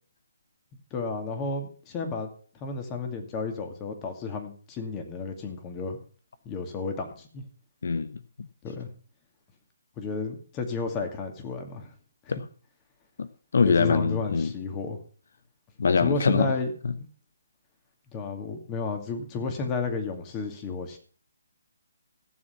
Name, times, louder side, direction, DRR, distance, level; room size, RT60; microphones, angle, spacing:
voice 1, 0.9-2.3 2.6-6.0 6.4-7.4 8.6-8.9 10.0-11.9 12.3-12.4 13.6-15.0 16.0-16.7 17.0-17.1 18.1-21.0, left 4 dB, 20° left, 4 dB, 2.4 m, -32 dB
voice 2, 7.8-8.5 12.3-12.4 13.2-14.5 15.8-16.5 16.8-16.9, left 5 dB, 65° left, 14 dB, 0.7 m, -24 dB
15.5 x 7.4 x 5.8 m, 0.42 s
hypercardioid pair, 155°, 0 cm